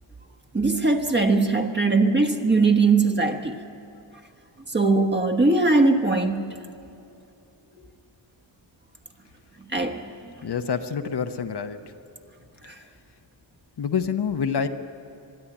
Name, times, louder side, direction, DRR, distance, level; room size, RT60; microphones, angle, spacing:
voice 1, 0.5-3.6 4.7-6.6 9.6-10.4 12.6-12.8, right 3 dB, 25° right, 5 dB, 1.3 m, -21 dB
voice 2, 10.4-11.8 13.8-14.7, left 6 dB, 55° left, 7 dB, 1.0 m, -27 dB
23.5 x 11.5 x 10.0 m, 2.6 s
wide cardioid pair, 110°, 46 cm